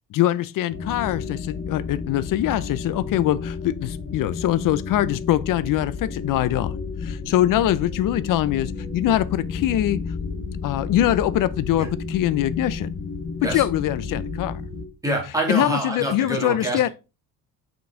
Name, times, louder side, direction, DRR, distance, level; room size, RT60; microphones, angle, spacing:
voice 1, 0.1-6.7 7.0-10.0 10.6-12.9 13.4-14.6 15.5-16.9, left 13 dB, 55° left, 0.5 m, -23 dB
sound 1, 0.7-14.9, left 5 dB, 30° left, 0.9 m, -32 dB
voice 2, 15.0-16.9, right 1 dB, 10° right, 2.1 m, -26 dB
6.1 x 5.2 x 3.6 m
cardioid pair, 155°, 41 cm